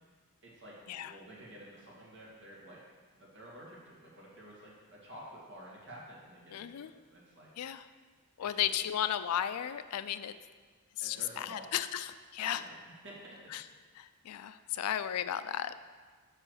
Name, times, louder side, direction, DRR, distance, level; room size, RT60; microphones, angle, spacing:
voice 1, 0.4-2.8 3.2-4.7 5.0-7.5 8.5-8.6 11.0-11.7 12.4-12.8 13.0-13.4, right 1 dB, 55° right, -5 dB, 2.2 m, -51 dB
voice 2, 6.5-6.9 7.6-7.9 8.4-10.3 11.0-12.7 13.5-13.7 14.0-15.7, left 10 dB, 85° left, 12 dB, 0.4 m, -35 dB
5.8 x 4.9 x 6.4 m, 1.5 s
head